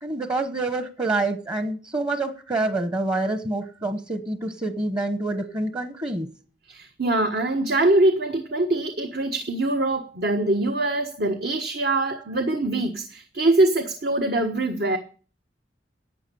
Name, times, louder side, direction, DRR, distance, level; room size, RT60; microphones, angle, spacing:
voice 1, 0.0-6.3, right 2 dB, 25° right, 1.0 m, -27 dB
voice 2, 6.7-15.0, right 2 dB, 60° right, 1.3 m, -23 dB
11.5 x 8.3 x 6.9 m
head